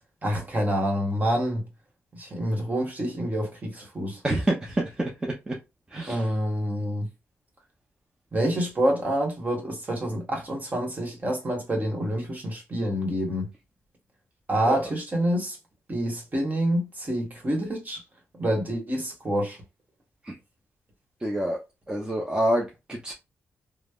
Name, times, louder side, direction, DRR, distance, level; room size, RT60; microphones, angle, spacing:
voice 1, 0.2-1.6 2.1-4.2 6.1-7.1 8.3-13.5 14.5-15.6 15.9-18.0 18.3-19.6, equal, 35° right, 1.3 m, -27 dB
voice 2, 4.2-5.6 5.9-6.3 14.7-14.9 20.2-20.4 21.2-21.6 21.9-23.1, right 1 dB, 15° right, 0.7 m, -27 dB
3.2 x 2.0 x 2.3 m
cardioid pair, 75°, 5 cm